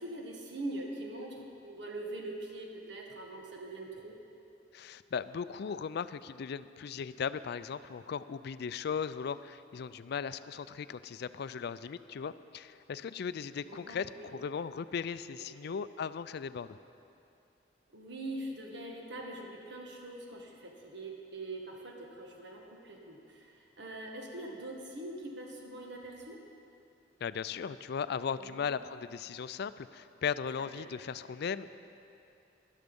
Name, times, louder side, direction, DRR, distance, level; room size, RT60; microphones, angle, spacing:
voice 1, 0.0-4.2 13.7-14.3 15.6-15.7 17.9-26.4 28.4-28.6 30.8-30.9, right 1 dB, 65° right, 0 dB, 1.6 m, -43 dB
voice 2, 4.7-16.8 27.2-31.9, left 6 dB, 60° left, 15 dB, 0.4 m, -37 dB
13.0 x 11.5 x 5.3 m, 2.6 s
head